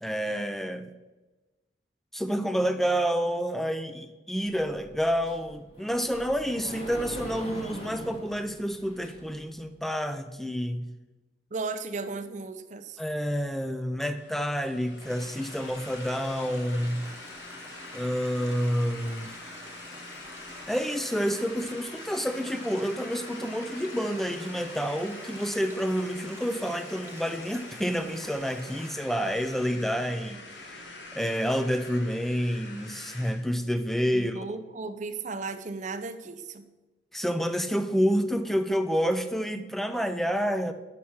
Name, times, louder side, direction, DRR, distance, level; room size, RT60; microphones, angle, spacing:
voice 1, 0.0-0.9 2.1-10.9 13.0-17.1 17.9-19.3 20.7-30.4 30.7-30.9 31.1-34.5 37.1-40.7, equal, ahead, 9 dB, 0.4 m, -29 dB
Sliding door, 4.5-9.5, equal, 35° left, 1.9 m, -42 dB
voice 2, 11.5-13.0 34.1-36.7, right 3 dB, 45° right, 9 dB, 0.6 m, -35 dB
sound 1, 14.1-33.5, left 3 dB, 85° left, 1.2 m, -45 dB
sound 2, 15.0-28.9, right 2 dB, 15° right, 1.0 m, -48 dB
5.8 x 5.7 x 6.3 m, 1.1 s
head